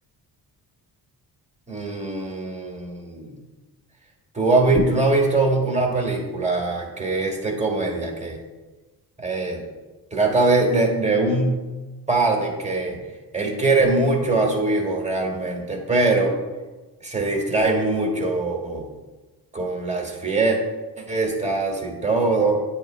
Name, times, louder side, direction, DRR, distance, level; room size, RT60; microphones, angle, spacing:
voice 1, 1.7-3.4 4.3-8.4 9.2-9.6 10.1-11.7 12.1-13.0 13.3-16.3 17.0-18.8 19.5-20.6 21.0-22.6, right 2 dB, 15° right, 1 dB, 1.8 m, -22 dB
8.4 x 2.9 x 4.9 m, 1.2 s
cardioid pair, 65°, 41 cm